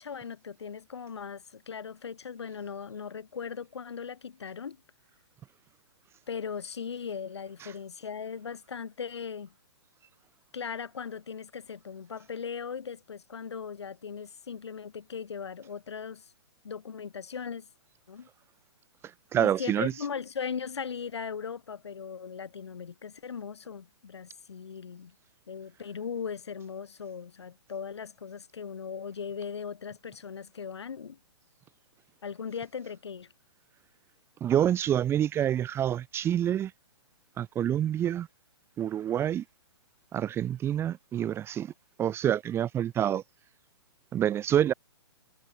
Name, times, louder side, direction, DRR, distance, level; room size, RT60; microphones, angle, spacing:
voice 1, 0.0-4.8 6.3-9.5 10.5-16.3 16.6-17.7 18.1-18.3 19.3-25.1 25.5-31.2 32.2-33.3, left 6 dB, 70° left, 4.8 m, -38 dB
voice 2, 19.3-19.9 34.4-36.7 37.4-38.3 38.8-39.4 40.1-41.7 42.0-43.2 44.1-44.7, right 10 dB, 15° right, 0.9 m, -27 dB
figure-of-eight pair, 125°, 14 cm